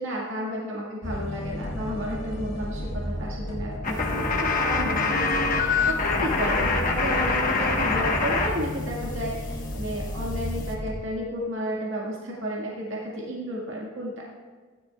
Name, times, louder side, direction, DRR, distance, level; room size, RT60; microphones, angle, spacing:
voice 1, 0.0-14.1, equal, 65° right, -4 dB, 1.9 m, -32 dB
sound 1, 1.0-10.9, left 1 dB, 55° left, 1.8 m, -33 dB
sound 2, 3.8-8.5 8.8-10.7, left 4 dB, 40° left, 1.3 m, -26 dB
16.0 x 11.0 x 2.4 m, 1.5 s
head